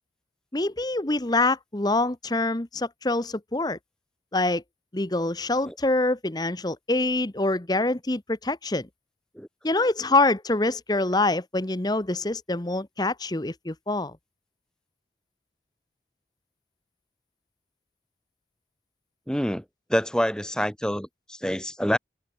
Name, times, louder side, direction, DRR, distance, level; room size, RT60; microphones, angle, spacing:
voice 1, 0.5-3.8 4.3-4.6 4.9-8.9 9.6-14.1, left 2 dB, 20° left, 1.0 m, -25 dB
voice 2, 19.3-19.6 19.9-22.0, equal, 5° left, 5.7 m, -26 dB
head